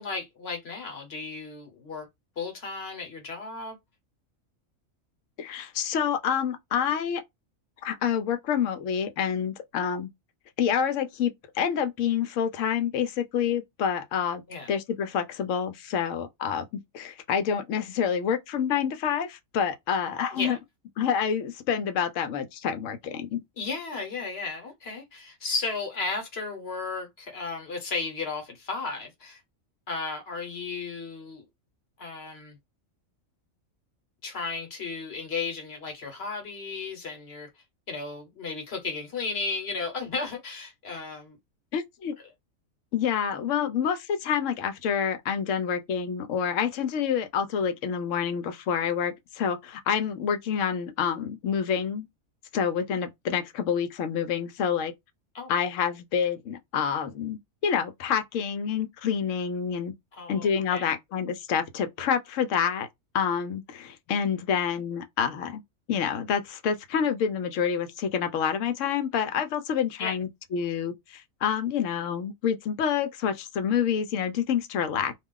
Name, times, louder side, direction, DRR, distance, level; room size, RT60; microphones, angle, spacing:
voice 1, 0.0-2.1 2.4-3.8 14.5-14.7 20.3-20.6 23.6-29.4 29.9-31.4 32.0-32.6 34.2-37.5 37.9-41.4 55.3-55.5 60.1-60.9 70.0-70.1, left 4 dB, 55° left, 1.1 m, -34 dB
voice 2, 5.4-7.2 7.8-10.1 10.6-14.4 14.7-20.6 21.0-23.4 41.7-42.1 42.9-52.1 52.5-54.9 55.5-59.9 60.3-62.9 63.1-65.6 65.9-75.2, left 7 dB, 75° left, 0.9 m, -28 dB
2.3 x 2.3 x 3.6 m
omnidirectional pair, 1.4 m